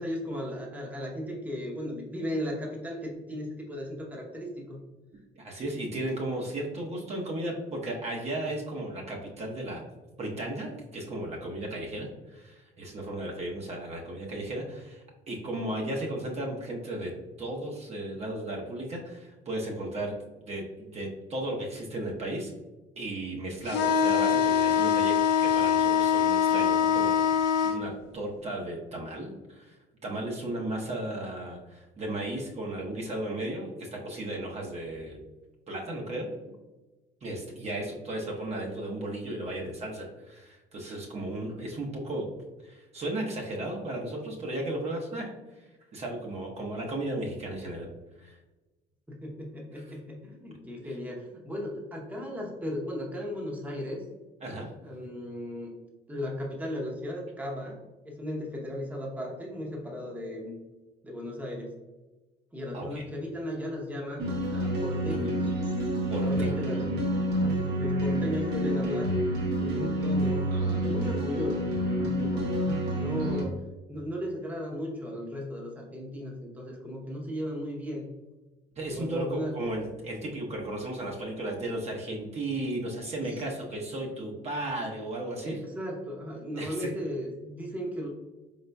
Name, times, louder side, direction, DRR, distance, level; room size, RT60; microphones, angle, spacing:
voice 1, 0.0-4.8 49.1-54.0 54.8-55.7 56.1-57.8 58.0-60.5 61.0-61.7 62.5-64.2 64.5-65.5 66.1-69.1 69.6-73.5 73.9-78.0 79.0-79.5 83.2-83.3 85.4-88.1, left 1 dB, 10° right, -1 dB, 0.8 m, -36 dB
voice 2, 5.4-9.9 10.2-17.1 17.4-20.1 20.5-22.5 23.0-29.8 30.0-35.2 35.7-36.3 37.2-42.3 42.6-45.3 45.9-47.9 48.2-48.4 49.8-49.9 50.8-50.9 54.4-54.7 62.7-63.1 66.1-66.6 78.8-85.6 86.6-86.9, right 1 dB, 40° right, -1 dB, 0.8 m, -35 dB
sound 1, 23.7-27.8, left 8 dB, 85° left, 0.6 m, -23 dB
sound 2, 64.2-73.4, right 1 dB, 75° right, 1.2 m, -28 dB
4.3 x 4.0 x 2.2 m, 1.2 s
cardioid pair, 110°, 17 cm